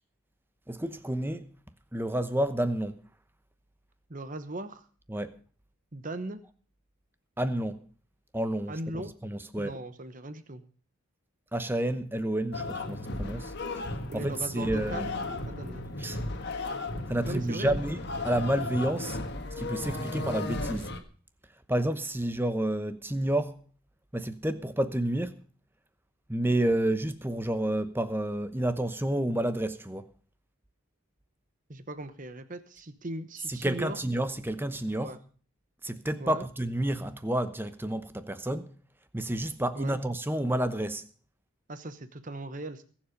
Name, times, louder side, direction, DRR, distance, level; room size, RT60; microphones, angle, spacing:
voice 1, 0.7-1.5 1.9-3.0 5.1-5.4 7.4-7.8 8.3-9.8 11.5-13.8 14.1-15.1 16.0-16.2 17.1-18.0 18.2-19.2 19.5-20.9 21.7-23.6 24.1-25.4 26.3-30.1 33.5-35.2 35.8-38.7 39.1-41.1, right 1 dB, 10° right, 0.9 m, -30 dB
voice 2, 4.1-4.9 5.9-6.4 8.7-9.1 9.6-10.6 14.1-15.9 17.3-17.8 31.7-34.0 35.0-35.2 36.2-36.5 39.7-40.0 41.7-42.8, right 2 dB, 35° right, 1.1 m, -38 dB
sound 1, 12.5-21.0, left 2 dB, 50° left, 1.6 m, -35 dB
22.0 x 7.4 x 5.2 m
head